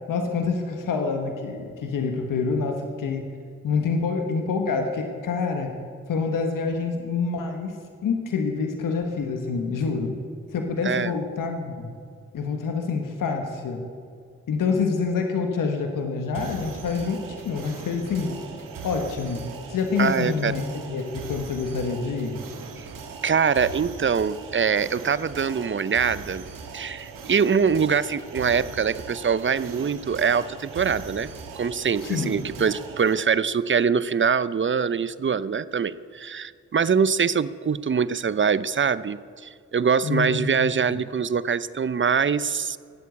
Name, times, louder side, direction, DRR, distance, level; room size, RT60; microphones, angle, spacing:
voice 1, 0.1-3.2 3.6-5.7 6.1-7.7 8.0-10.1 10.5-11.9 12.3-13.8 14.5-18.4 18.8-22.4 32.0-32.3 40.0-41.0, left 4 dB, 80° left, 4 dB, 1.6 m, -27 dB
sound 1, 16.3-33.1, right 5 dB, 85° right, 1.6 m, -40 dB
voice 2, 20.0-20.5 22.8-22.9 23.2-26.4 26.7-31.3 31.6-42.8, right 6 dB, 35° right, 17 dB, 0.7 m, -23 dB
18.5 x 8.3 x 8.4 m, 2.2 s
supercardioid pair, 40°, 32 cm